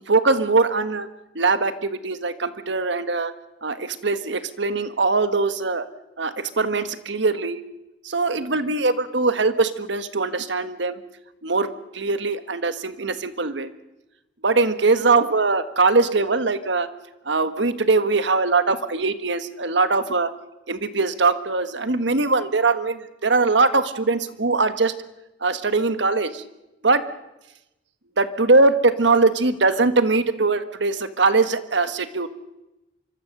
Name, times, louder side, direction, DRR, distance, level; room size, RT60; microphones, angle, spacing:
voice 1, 0.1-1.1 1.3-3.3 3.6-5.8 6.2-7.6 8.0-11.0 11.4-13.7 14.4-16.9 17.3-20.3 20.7-24.9 25.4-26.4 26.8-27.1 28.2-32.3, right 3 dB, 70° right, 11 dB, 1.4 m, -21 dB
26.0 x 24.0 x 6.7 m, 0.98 s
head